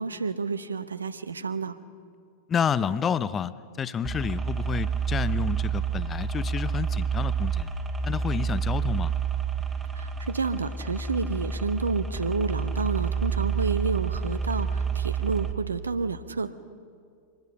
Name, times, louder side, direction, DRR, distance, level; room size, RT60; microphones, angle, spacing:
voice 1, 0.0-1.8 10.0-16.5, right 4 dB, 75° right, 12 dB, 0.8 m, -30 dB
voice 2, 2.5-3.5 3.8-7.7 8.0-9.1, left 7 dB, 20° left, 17 dB, 0.6 m, -29 dB
sound 1, 4.0-15.5, right 6 dB, 15° right, 1.5 m, -29 dB
24.0 x 19.5 x 5.8 m, 2.3 s
figure-of-eight pair, 90°, 0 cm